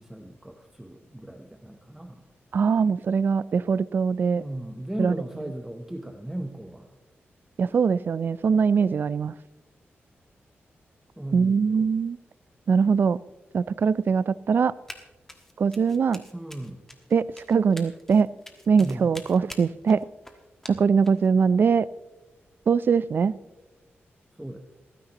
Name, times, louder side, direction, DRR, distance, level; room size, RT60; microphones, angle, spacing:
voice 1, 0.0-2.2 4.4-6.9 11.2-11.9 16.3-16.8 18.8-19.2 24.4-24.6, right 1 dB, 5° right, 4 dB, 0.8 m, -36 dB
voice 2, 2.5-4.4 5.0-5.1 7.6-9.3 11.3-12.2 12.7-13.2 13.5-14.7 15.6-16.2 17.1-18.3 18.7-20.0 20.7-21.9 22.7-23.3, right 6 dB, 50° right, 18 dB, 0.4 m, -22 dB
Run, 14.9-15.0 15.3-21.3, left 1 dB, 10° left, 1.4 m, -45 dB
27.5 x 10.0 x 2.9 m, 1.1 s
wide cardioid pair, 140°, 4 cm